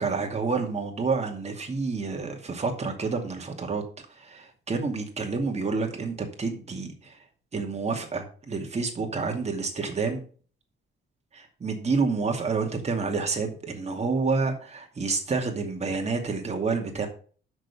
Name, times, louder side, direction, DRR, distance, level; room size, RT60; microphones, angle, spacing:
voice 1, 0.0-3.8 4.2-7.2 7.5-10.2 11.3-17.1, right 4 dB, 35° right, 3 dB, 2.4 m, -29 dB
6.6 x 6.0 x 7.2 m, 0.42 s
cardioid pair, 90°, 20 cm